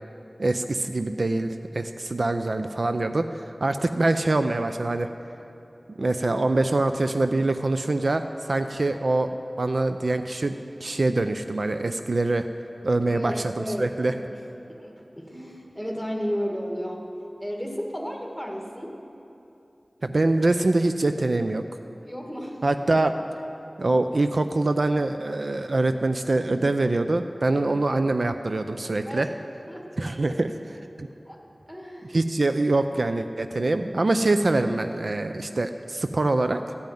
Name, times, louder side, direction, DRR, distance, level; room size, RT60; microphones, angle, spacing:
voice 1, 0.4-5.1 5.9-12.5 12.8-13.5 13.8-14.1 20.0-21.6 22.6-23.1 23.8-29.3 30.0-31.1 32.1-36.6, right 2 dB, 65° right, 8 dB, 0.4 m, -24 dB
voice 2, 13.1-13.9 14.3-14.4 14.7-17.0 17.4-19.0 22.0-22.6 27.5-27.9 29.0-29.3 29.7-30.3 31.3-31.4 31.7-32.2, equal, 5° right, 0 dB, 1.6 m, -33 dB
13.0 x 5.3 x 9.2 m, 2.9 s
wide cardioid pair, 55°, 0 cm